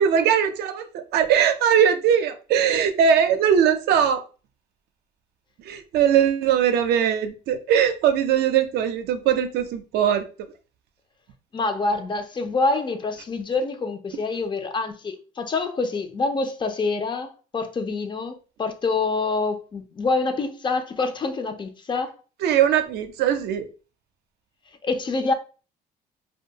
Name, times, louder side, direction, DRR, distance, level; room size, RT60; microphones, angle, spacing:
voice 1, 0.0-4.2 5.6-10.3 22.4-23.7, right 8 dB, 75° right, 0.4 m, -20 dB
voice 2, 11.5-22.2 24.8-25.3, left 3 dB, 30° left, 0.4 m, -26 dB
2.5 x 2.2 x 2.7 m
cardioid pair, 110°, 17 cm